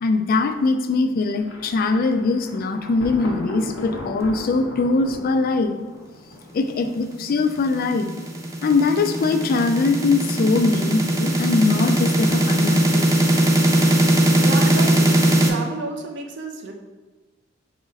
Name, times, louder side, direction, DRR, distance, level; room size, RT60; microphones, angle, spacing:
voice 1, 0.0-5.8 6.5-8.1 8.6-13.3, left 3 dB, 50° left, 7 dB, 0.3 m, -21 dB
Thunder, 1.4-7.2, left 1 dB, 80° left, 0.8 m, -37 dB
sound 1, 7.4-15.5, right 1 dB, 15° right, 0.5 m, -19 dB
voice 2, 14.4-16.7, right 3 dB, 65° right, 3 dB, 0.6 m, -31 dB
5.0 x 2.5 x 3.9 m, 1.3 s
head